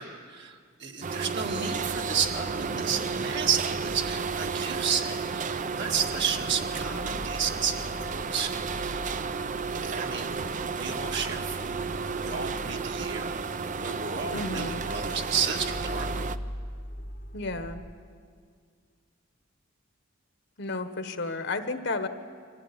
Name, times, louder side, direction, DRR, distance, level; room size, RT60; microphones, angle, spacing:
voice 1, 0.0-9.1 9.7-10.3 10.7-11.9 12.2-13.3 13.8-16.3, right 6 dB, 60° right, 2 dB, 2.0 m, -32 dB
sound 1, 1.0-16.4, right 5 dB, 40° right, 0.6 m, -32 dB
sound 2, 2.9-17.9, left 1 dB, 40° left, 1.0 m, -43 dB
voice 2, 14.3-14.8 17.3-17.8 20.6-22.1, left 2 dB, 60° left, 8 dB, 1.3 m, -32 dB
24.5 x 15.5 x 10.0 m, 2.1 s
head